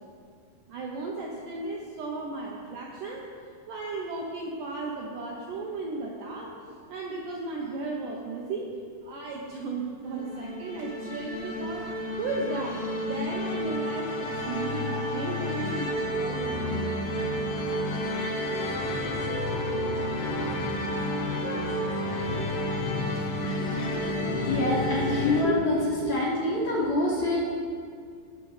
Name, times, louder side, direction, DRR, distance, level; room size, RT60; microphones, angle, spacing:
voice 1, 0.7-3.3 3.7-6.6 6.9-8.7 9.0-16.8, right 3 dB, 80° right, -2 dB, 1.9 m, -35 dB
sound 1, 10.0-25.4, left 1 dB, 80° left, 3.0 m, -30 dB
voice 2, 24.3-27.4, left 1 dB, 65° left, -6 dB, 1.9 m, -26 dB
16.0 x 6.3 x 3.2 m, 2.2 s
omnidirectional pair, 4.6 m